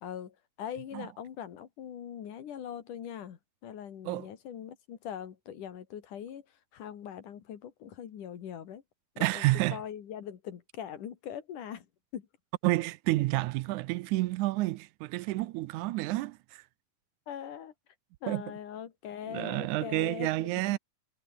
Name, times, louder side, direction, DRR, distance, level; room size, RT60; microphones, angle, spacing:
voice 1, 0.0-6.4 6.7-8.8 9.2-9.4 9.7-11.9 12.1-12.3 17.3-17.7 18.2-20.8, left 9 dB, 85° left, 3.6 m, -41 dB
voice 2, 9.2-9.8 12.6-16.6 18.3-18.4 19.3-20.8, right 18 dB, 80° right, 2.0 m, -30 dB
omnidirectional pair, 3.6 m